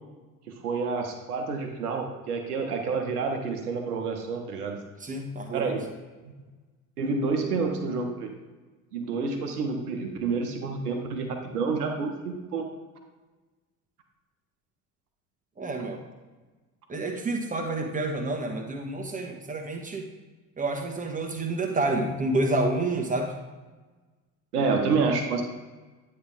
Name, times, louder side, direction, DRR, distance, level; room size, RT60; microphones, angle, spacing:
voice 1, 0.6-4.8 5.5-5.8 7.0-8.3 8.9-12.7 15.8-15.9 24.5-25.4, right 4 dB, 75° right, 3 dB, 0.9 m, -28 dB
voice 2, 5.0-5.7 15.6-16.0 16.9-20.1 20.6-23.3, right 2 dB, 15° right, 2 dB, 1.3 m, -29 dB
9.7 x 3.3 x 5.0 m, 1.3 s
figure-of-eight pair, 55°, 46 cm